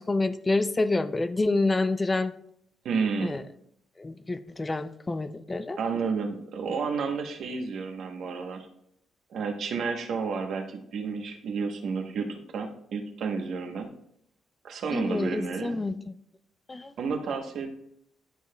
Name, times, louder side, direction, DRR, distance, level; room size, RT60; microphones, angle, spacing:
voice 1, 0.0-2.3 3.2-3.4 4.0-5.8 14.9-16.1 16.7-16.9, left 2 dB, 20° left, 12 dB, 0.4 m, -28 dB
voice 2, 2.8-3.3 5.8-8.7 9.3-13.9 14.6-15.8 17.0-17.7, right 5 dB, 65° right, 5 dB, 1.0 m, -31 dB
10.5 x 4.7 x 2.3 m, 0.71 s
cardioid pair, 90°, 0 cm